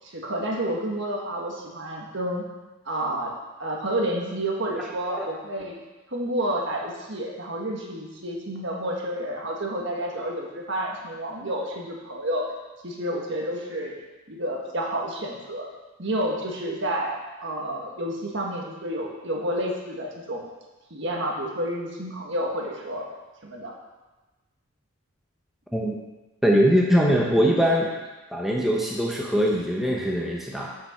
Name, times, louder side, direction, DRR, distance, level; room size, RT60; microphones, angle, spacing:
voice 1, 0.0-2.4 2.8-3.3 3.6-5.7 6.1-12.5 12.8-13.9 14.3-15.7 16.0-20.4 20.9-23.0 23.4-23.7, right 1 dB, 55° right, -1 dB, 1.6 m, -30 dB
voice 2, 26.4-27.9 28.3-30.7, equal, ahead, -2 dB, 0.8 m, -22 dB
7.4 x 6.8 x 5.9 m, 1.1 s
head